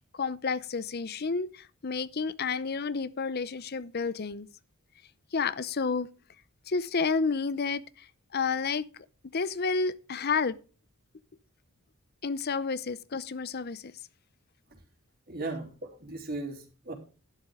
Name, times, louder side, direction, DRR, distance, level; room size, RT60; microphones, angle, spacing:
voice 1, 0.1-4.5 5.3-6.1 6.7-8.1 8.3-8.9 9.3-10.6 12.2-13.9, left 4 dB, 50° left, 0.6 m, -30 dB
voice 2, 15.3-16.9, right 2 dB, 45° right, 3.5 m, -37 dB
12.0 x 10.5 x 3.7 m
head